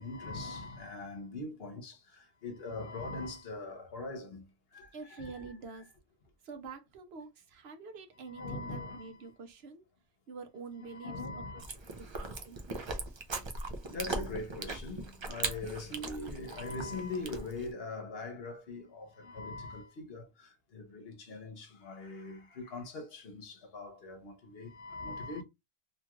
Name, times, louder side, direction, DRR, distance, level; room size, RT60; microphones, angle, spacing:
voice 1, 0.0-5.5 8.3-9.3 10.8-11.7 13.9-25.4, left 3 dB, 65° left, 1.0 m, -42 dB
voice 2, 4.9-5.9 6.4-9.9 10.3-11.4 12.0-12.9, right 4 dB, 75° right, 0.9 m, -47 dB
Chewing mastication, 11.6-17.7, right 3 dB, 45° right, 0.3 m, -39 dB
2.8 x 2.3 x 2.9 m
omnidirectional pair, 1.1 m